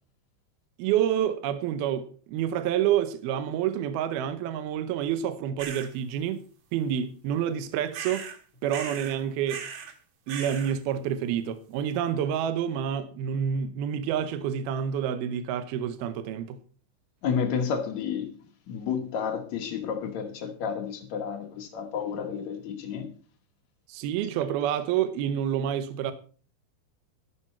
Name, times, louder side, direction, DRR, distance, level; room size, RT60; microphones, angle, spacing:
voice 1, 0.8-6.4 6.7-8.3 8.6-9.7 10.3-16.6 23.9-26.1, right 9 dB, 75° right, 2.4 m, -28 dB
sound 1, 5.6-5.9 7.9-8.4 8.7-9.2 9.5-9.9 10.3-10.7, right 7 dB, 60° right, 1.9 m, -38 dB
voice 2, 17.2-18.4 18.7-23.1, left 7 dB, 75° left, 1.6 m, -31 dB
13.0 x 12.0 x 4.3 m
omnidirectional pair, 5.3 m